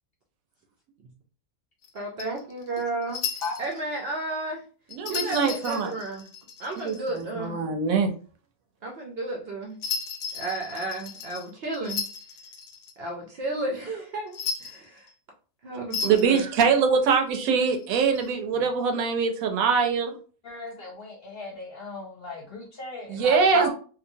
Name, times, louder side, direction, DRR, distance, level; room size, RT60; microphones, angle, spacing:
sound 1, 1.8-3.8 4.9-7.2 9.8-12.9 14.3-15.1 15.9-16.4 17.7-18.3, left 6 dB, 80° left, 1.0 m, -35 dB
voice 1, 1.9-3.2 3.6-4.6 5.0-6.2 6.6-7.6 8.8-9.8 10.3-12.0 13.0-15.1 15.6-16.4 23.5-23.7, right 2 dB, 60° right, 0 dB, 0.7 m, -32 dB
voice 2, 4.9-5.9 6.8-8.1 16.0-20.1 23.1-23.7, right 5 dB, 75° right, 5 dB, 1.0 m, -23 dB
voice 3, 20.4-23.5, left 3 dB, 60° left, -2 dB, 0.6 m, -37 dB
2.8 x 2.3 x 2.6 m, 0.40 s
omnidirectional pair, 1.5 m